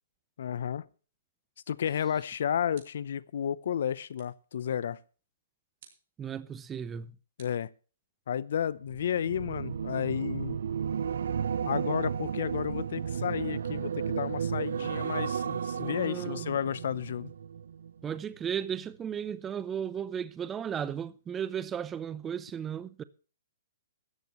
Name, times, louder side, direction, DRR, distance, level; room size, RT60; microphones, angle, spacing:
voice 1, 0.4-0.9 1.7-5.0 7.4-7.7 8.3-10.6 11.6-17.3, left 9 dB, 65° left, 0.7 m, -32 dB
sound 1, 2.7-3.2 4.1-4.5 5.8-6.2 7.4-8.3, right 7 dB, 45° right, 4.8 m, -60 dB
voice 2, 6.2-7.1 15.8-16.5 18.0-23.0, right 8 dB, 15° right, 0.6 m, -35 dB
sound 2, 8.8-18.2 18.6-18.9, right 7 dB, 75° right, 0.6 m, -34 dB
16.0 x 14.0 x 3.1 m
hypercardioid pair, 155°, 0 cm